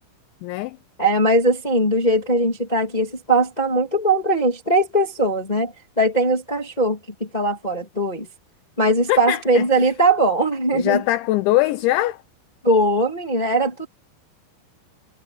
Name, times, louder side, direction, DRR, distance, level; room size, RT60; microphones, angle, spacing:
voice 1, 0.4-0.8 9.1-9.7 10.7-12.2, left 16 dB, 80° left, 3.1 m, -21 dB
voice 2, 1.0-8.3 8.8-11.0 12.6-13.9, right 1 dB, 20° left, 1.0 m, -20 dB
omnidirectional pair, 5.4 m